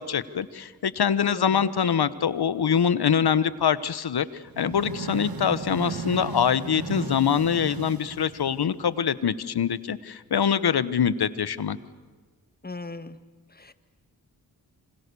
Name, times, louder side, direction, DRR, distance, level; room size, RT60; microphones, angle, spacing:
voice 1, 0.0-11.8, left 8 dB, 75° left, 16 dB, 1.2 m, -24 dB
voice 2, 1.2-1.7 12.6-13.2 13.5-13.7, left 3 dB, 25° left, 12 dB, 1.7 m, -38 dB
sound 1, 4.5-9.0, right 5 dB, 65° right, 1.7 m, -36 dB
27.0 x 26.0 x 7.0 m, 1.4 s
cardioid pair, 45°, 38 cm